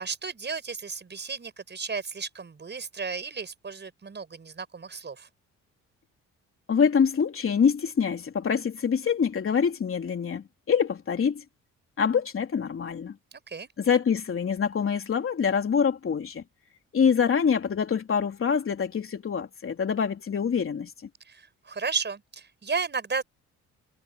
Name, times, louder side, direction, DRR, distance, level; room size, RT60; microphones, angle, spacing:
voice 1, 0.0-5.3 13.3-13.7 21.3-23.2, right 5 dB, 35° right, 6.4 m, -34 dB
voice 2, 6.7-11.4 12.0-13.2 13.8-16.4 16.9-20.9, left 6 dB, 45° left, 3.3 m, -25 dB
cardioid pair, 90°, 30 cm